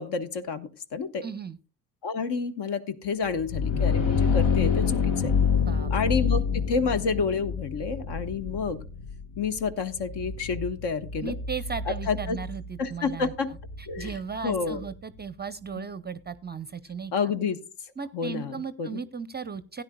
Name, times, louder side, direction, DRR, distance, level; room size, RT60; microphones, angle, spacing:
voice 1, 0.0-1.2 2.0-5.3 5.9-8.8 9.4-11.3 11.9-12.4 12.8-13.5 13.9-14.1 14.4-14.8 15.8-15.9 17.1-17.6 18.1-19.0, left 5 dB, 55° left, 12 dB, 1.1 m, -29 dB
voice 2, 1.2-1.6 5.6-5.9 6.2-6.4 11.2-13.3 13.8-17.1 18.0-19.8, right 6 dB, 20° right, 15 dB, 0.6 m, -36 dB
sound 1, 3.3-14.9, left 6 dB, 70° left, 1.4 m, -28 dB
16.5 x 9.9 x 2.2 m, 0.36 s
hypercardioid pair, 45°, 50 cm